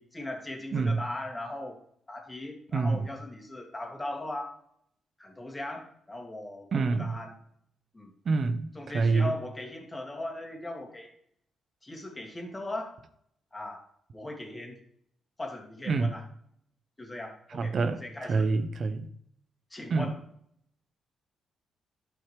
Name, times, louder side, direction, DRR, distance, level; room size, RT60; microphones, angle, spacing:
voice 1, 0.0-1.8 2.1-4.6 5.2-7.3 7.9-8.1 8.7-11.1 11.8-13.0 13.5-13.9 14.1-14.8 15.4-16.2 17.0-18.5 19.7-20.2, left 1 dB, 20° left, 2.5 m, -39 dB
voice 2, 0.7-1.0 2.7-3.1 6.7-7.2 8.3-9.4 15.9-16.1 17.5-19.1 19.9-20.1, right 4 dB, 55° right, 0.7 m, -27 dB
11.5 x 5.7 x 3.3 m
supercardioid pair, 65°, 0 cm